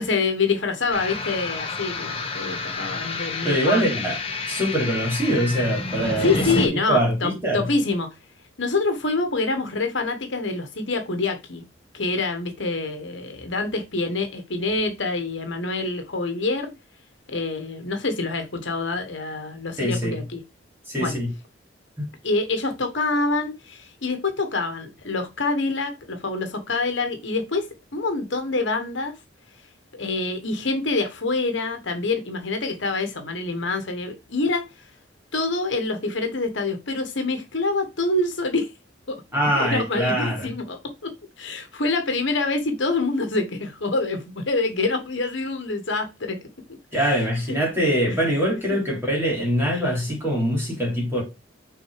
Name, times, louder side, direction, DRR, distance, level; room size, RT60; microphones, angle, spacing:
voice 1, 0.0-3.9 6.2-8.1 8.6-11.6 11.9-16.7 17.3-20.4 21.0-21.2 22.2-27.7 27.9-29.1 29.9-34.7 35.3-38.7 39.1-39.2 39.5-41.1 41.4-46.4 46.9-47.3 48.2-48.3 48.7-48.8 49.7-49.9, left 3 dB, 65° left, 1.3 m, -26 dB
sound 1, 0.9-6.7, left 3 dB, 30° left, 1.1 m, -29 dB
voice 2, 3.4-4.2 4.5-7.6 19.8-20.2 20.9-21.3 22.0-22.1 39.3-40.5 46.9-51.2, equal, 10° right, 3.3 m, -23 dB
6.2 x 3.9 x 4.8 m
head